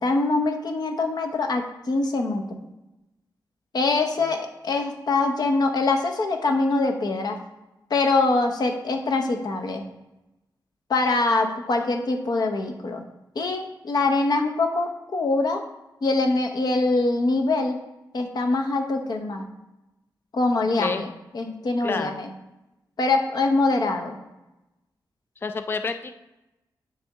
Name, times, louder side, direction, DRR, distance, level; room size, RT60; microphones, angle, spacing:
voice 1, 0.0-2.4 3.7-7.4 7.9-9.8 10.9-13.0 13.3-15.6 16.0-17.8 18.1-19.4 20.3-22.3 23.0-24.2, left 3 dB, 55° left, 4 dB, 0.8 m, -24 dB
voice 2, 20.8-21.1 21.8-22.2 25.4-26.2, left 4 dB, 25° left, 8 dB, 0.3 m, -29 dB
9.8 x 3.5 x 3.6 m, 0.98 s
wide cardioid pair, 145°, 8 cm